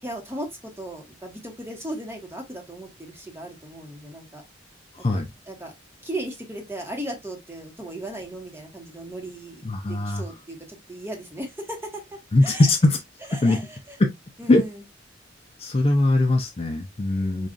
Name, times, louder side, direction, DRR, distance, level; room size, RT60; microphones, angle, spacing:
voice 1, 0.0-4.4 5.5-5.7 6.0-12.0 12.4-12.7 13.3-14.0 14.4-14.8 17.2-17.5, right 1 dB, 10° right, 1.1 m, -36 dB
voice 2, 5.0-5.3 9.6-10.2 12.3-13.0 13.3-13.6 14.0-14.1 14.5-14.6 15.6-17.5, left 2 dB, 30° left, 0.5 m, -20 dB
5.1 x 2.4 x 2.4 m
head